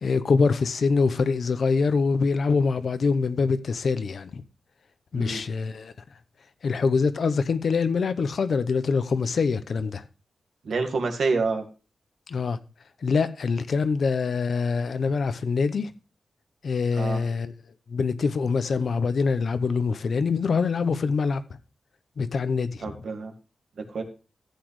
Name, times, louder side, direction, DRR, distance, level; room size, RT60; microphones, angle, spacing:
voice 1, 0.0-4.4 5.1-5.9 6.6-10.0 12.3-12.6 13.0-15.9 16.6-17.5 17.9-21.4 22.2-22.8, left 4 dB, 60° left, 0.7 m, -24 dB
voice 2, 10.6-11.6 17.0-17.2 22.8-23.3 23.9-24.0, right 4 dB, 75° right, 2.0 m, -27 dB
14.0 x 8.4 x 3.1 m
wide cardioid pair, 135°, 0 cm